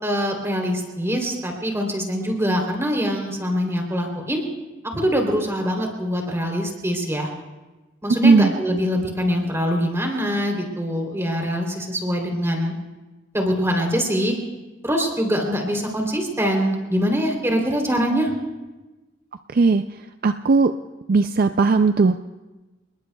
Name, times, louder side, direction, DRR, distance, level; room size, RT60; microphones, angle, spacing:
voice 1, 0.0-4.4 4.9-7.3 8.0-12.7 13.3-14.4 14.8-18.3, equal, 15° right, 1 dB, 3.3 m, -23 dB
voice 2, 20.2-20.7 21.1-22.2, right 4 dB, 50° right, 9 dB, 0.4 m, -16 dB
29.5 x 20.5 x 2.3 m, 1.1 s
head